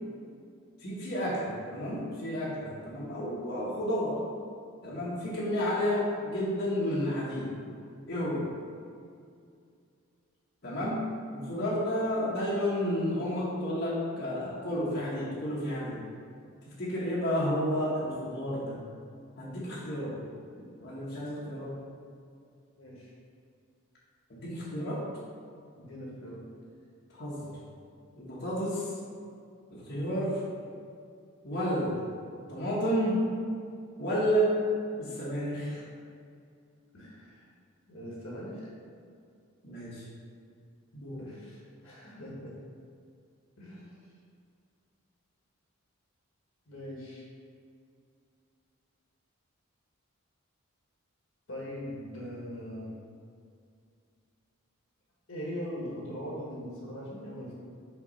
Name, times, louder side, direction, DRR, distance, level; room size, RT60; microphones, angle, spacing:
voice 1, 0.8-4.2 4.8-7.5 8.1-8.5 10.6-11.0 11.3-16.0 16.6-18.8 19.4-20.2 20.8-21.8 24.3-25.0 27.1-27.5 28.2-29.0 29.7-30.4 31.4-32.0 32.5-33.2 34.0-34.5 35.0-35.8 39.6-40.0 40.9-41.3, equal, 50° left, -8 dB, 1.2 m, -31 dB
voice 2, 22.8-23.1 25.7-26.5 36.9-37.4 37.9-38.7 41.2-42.5 43.6-43.9 46.7-47.3 51.5-53.0 55.3-57.5, equal, 70° left, -5 dB, 1.4 m, -41 dB
5.7 x 3.0 x 5.5 m, 2.3 s
head